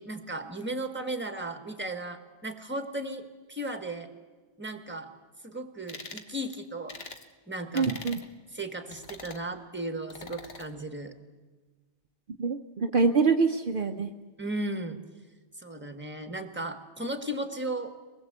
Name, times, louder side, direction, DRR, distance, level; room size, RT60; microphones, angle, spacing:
voice 1, 0.0-4.1 4.6-5.1 5.4-7.0 7.5-7.9 8.5-11.1 14.4-15.0 15.6-17.9, right 1 dB, 10° right, 7 dB, 1.7 m, -35 dB
sound 1, 5.9-6.3 6.9-7.2 7.7-8.3 8.9-9.4 10.1-10.7, left 4 dB, 60° left, 1.6 m, -43 dB
voice 2, 7.7-8.2 12.4-14.1, right 4 dB, 55° right, 5 dB, 1.0 m, -25 dB
24.0 x 20.0 x 8.1 m, 1.3 s
omnidirectional pair, 1.1 m